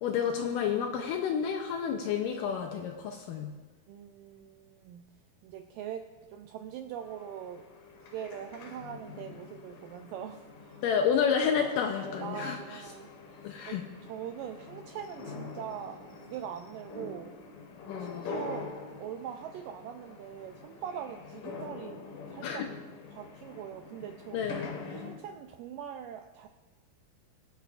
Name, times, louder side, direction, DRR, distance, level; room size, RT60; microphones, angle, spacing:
voice 1, 0.0-3.5 10.8-12.8 13.4-13.8 17.9-18.3 22.4-22.7 24.3-24.7, left 7 dB, 80° left, 3 dB, 2.0 m, -30 dB
voice 2, 3.9-5.0 5.4-7.6 7.9-10.8 12.2-17.3 18.0-18.7 19.0-22.6 23.1-24.4 24.9-26.5, right 9 dB, 90° right, 6 dB, 1.9 m, -42 dB
sound 1, 7.0-25.2, left 4 dB, 65° left, 2.8 m, -45 dB
24.0 x 8.1 x 2.5 m, 1.3 s
omnidirectional pair, 4.4 m